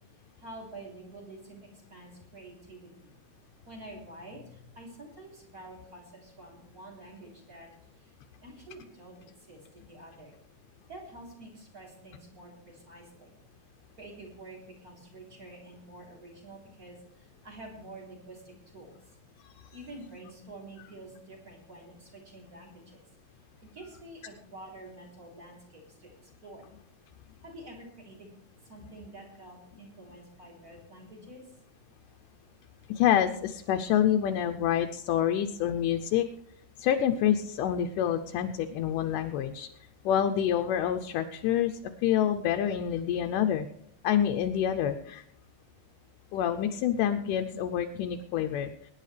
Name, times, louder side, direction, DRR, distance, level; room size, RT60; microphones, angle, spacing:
voice 1, 0.4-3.1 3.6-7.7 8.0-8.2 8.4-10.4 10.9-13.3 14.0-18.9 19.7-23.0 23.6-26.6 27.4-28.3 28.6-31.4, right 2 dB, 25° right, -1 dB, 3.8 m, -48 dB
voice 2, 32.9-36.3 36.8-39.7 40.1-43.7 44.0-45.2 46.3-48.7, left 10 dB, 80° left, 5 dB, 2.1 m, -27 dB
23.0 x 10.0 x 3.3 m, 0.66 s
omnidirectional pair, 3.9 m